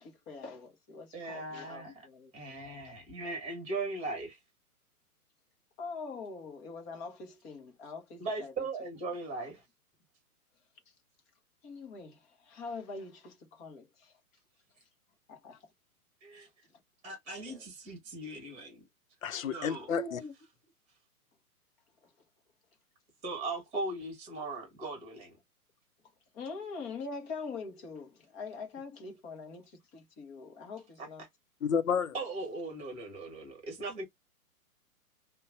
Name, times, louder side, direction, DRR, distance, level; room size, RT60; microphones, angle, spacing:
voice 1, 0.0-3.0 5.8-8.7 10.9-11.0 11.6-14.2 15.3-15.7 17.5-17.6 19.9-20.3 22.0-22.1 26.3-31.2, left 4 dB, 15° left, 0.6 m, -44 dB
voice 2, 1.1-2.1 2.3-4.4 8.2-9.6 16.2-16.5 17.0-18.8 19.5-19.9 23.2-25.3 32.1-34.0, right 2 dB, 15° right, 1.4 m, -38 dB
voice 3, 19.2-20.2 31.6-32.1, left 7 dB, 60° left, 0.8 m, -30 dB
5.2 x 2.2 x 2.5 m
figure-of-eight pair, 120°, 45 cm